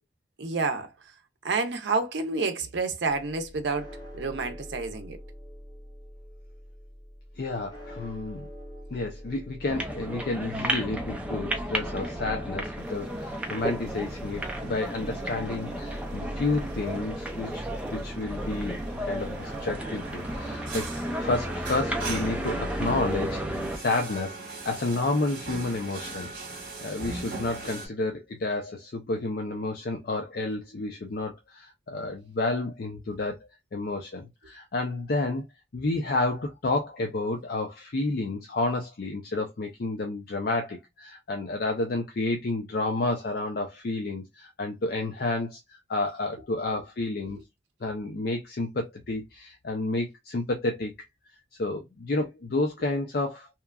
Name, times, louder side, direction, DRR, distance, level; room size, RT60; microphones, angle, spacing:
voice 1, 0.4-0.9 1.4-5.2, right 4 dB, 70° right, 0.6 m, -29 dB
sound 1, 3.1-21.4, equal, 20° left, 0.7 m, -46 dB
voice 2, 7.4-8.5 8.9-20.9 21.1-24.4 24.6-26.3 26.8-33.4 33.7-35.4 35.7-47.4 47.8-50.9 51.6-53.5, left 2 dB, 55° left, 0.5 m, -30 dB
sound 2, 9.7-23.8, right 1 dB, 5° right, 0.4 m, -33 dB
sound 3, 12.8-27.9, right 3 dB, 50° right, 1.1 m, -42 dB
2.9 x 2.3 x 2.2 m
head